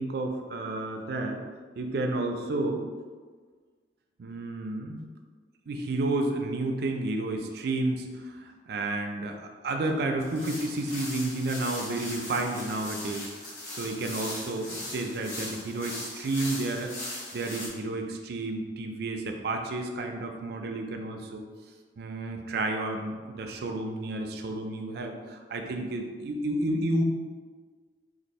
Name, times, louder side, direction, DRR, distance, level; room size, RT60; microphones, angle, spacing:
voice 1, 0.0-1.4 1.8-2.8 4.2-5.1 5.7-13.3 13.7-21.4 22.0-27.0, right 2 dB, 60° right, 3 dB, 0.4 m, -31 dB
sound 1, 10.2-17.7, left 1 dB, 60° left, 1.1 m, -39 dB
2.6 x 2.5 x 4.1 m, 1.5 s
head